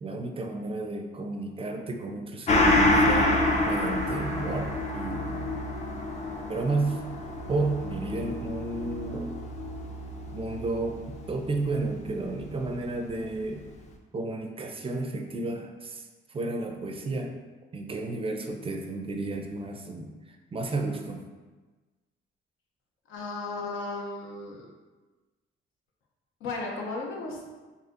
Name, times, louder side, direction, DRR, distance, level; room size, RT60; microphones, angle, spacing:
voice 1, 0.0-3.3 3.7-5.5 6.5-7.0 7.5-9.3 10.3-13.7 14.1-17.3 17.7-21.3, right 2 dB, 30° right, 4 dB, 0.4 m, -32 dB
Gong, 2.5-11.4 11.8-11.9, left 1 dB, 35° left, 0.5 m, -27 dB
voice 2, 23.1-24.6 26.4-27.4, left 3 dB, 85° left, -1 dB, 0.7 m, -35 dB
4.1 x 2.7 x 2.5 m, 1.3 s
cardioid pair, 90°, 20 cm